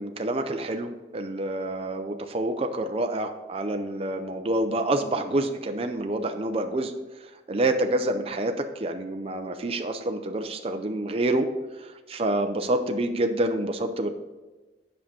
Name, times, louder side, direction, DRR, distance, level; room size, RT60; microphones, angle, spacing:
voice 1, 0.0-6.9 7.2-11.5 11.8-14.1, right 1 dB, 35° right, 5 dB, 0.5 m, -27 dB
7.6 x 5.6 x 5.9 m, 1.2 s
head